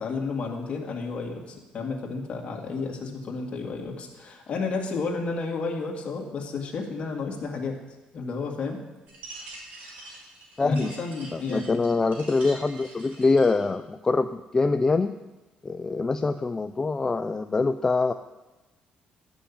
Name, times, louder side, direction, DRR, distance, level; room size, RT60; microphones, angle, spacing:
voice 1, 0.0-7.8 8.1-8.8 10.6-11.7, left 4 dB, 45° left, 1 dB, 2.2 m, -32 dB
sound 1, 9.1-13.6, right 2 dB, 70° right, 4.9 m, -45 dB
voice 2, 10.6-10.9 11.3-15.2 15.6-18.1, left 3 dB, 20° left, 8 dB, 0.4 m, -24 dB
12.5 x 6.2 x 8.4 m, 1.1 s
cardioid pair, 140°, 3 cm